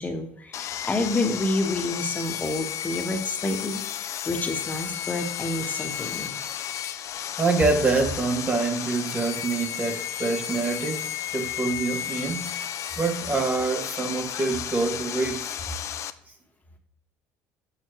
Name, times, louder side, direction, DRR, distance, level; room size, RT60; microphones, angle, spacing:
voice 1, 0.0-6.3, left 2 dB, 25° left, 5 dB, 1.1 m, -29 dB
Sawing, 0.5-16.1, left 10 dB, 50° left, 0.4 m, -33 dB
voice 2, 7.4-15.6, right 3 dB, 25° right, 4 dB, 0.8 m, -26 dB
6.7 x 5.7 x 3.0 m, 0.70 s
supercardioid pair, 85°, 7 cm